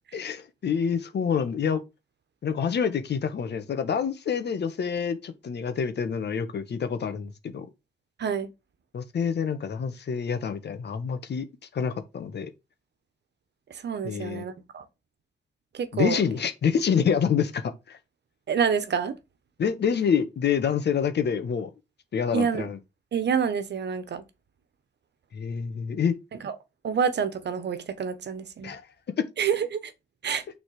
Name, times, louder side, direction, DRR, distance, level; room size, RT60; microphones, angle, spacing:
voice 1, 0.1-1.8 2.4-7.7 8.9-11.4 11.7-12.5 14.0-14.4 15.9-18.0 19.6-21.7 22.1-22.8 25.3-26.2 28.6-28.8 29.2-29.3, left 7 dB, 65° left, 1.4 m, -27 dB
voice 2, 13.7-14.8 15.7-16.2 18.5-19.1 22.3-22.7 23.1-24.2 26.4-26.5 26.8-28.7 29.4-29.9 30.2-30.4, right 7 dB, 65° right, 1.3 m, -27 dB
6.6 x 4.1 x 4.9 m
cardioid pair, 110°, 19 cm